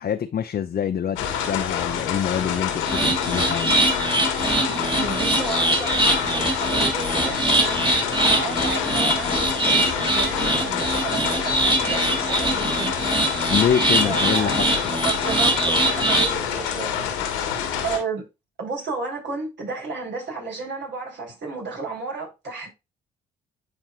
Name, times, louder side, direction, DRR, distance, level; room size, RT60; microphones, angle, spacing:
voice 1, 0.0-3.7 13.5-14.8, left 8 dB, 45° left, 0.7 m, -25 dB
sound 1, 1.2-18.0, left 8 dB, 90° left, 1.7 m, -27 dB
sound 2, 2.8-16.4, right 2 dB, 25° right, 2.4 m, -23 dB
voice 2, 4.7-7.8 8.2-13.7 14.0-14.6 15.0-16.9 17.8-18.2 18.6-22.7, right 4 dB, 60° right, 4.3 m, -32 dB
9.9 x 4.5 x 2.5 m
hypercardioid pair, 50°, 21 cm